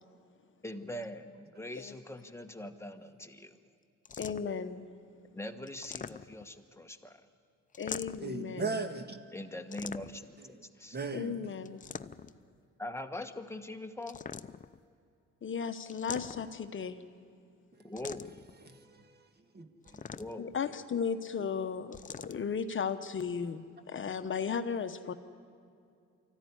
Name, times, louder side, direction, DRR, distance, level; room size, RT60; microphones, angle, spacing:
voice 1, 0.6-3.6 5.3-7.3 9.3-11.0 12.8-14.2 17.8-18.3 20.1-20.6, left 1 dB, 10° left, 1.3 m, -42 dB
sound 1, 4.0-4.6 5.7-6.6 7.7-8.4 9.7-10.3 11.6-12.4 14.0-14.8 15.9-16.7 18.0-18.5 19.8-20.6 21.9-22.4, left 6 dB, 25° left, 0.6 m, -43 dB
voice 2, 4.2-4.9 7.8-8.9 11.1-11.8 15.4-17.0 20.4-22.0 22.2-25.1, left 6 dB, 40° left, 1.0 m, -35 dB
voice 3, 8.2-9.2 10.9-11.5 18.6-19.2 19.5-20.0, right 4 dB, 35° right, 1.6 m, -38 dB
24.5 x 14.5 x 9.8 m
cardioid pair, 90°, 30 cm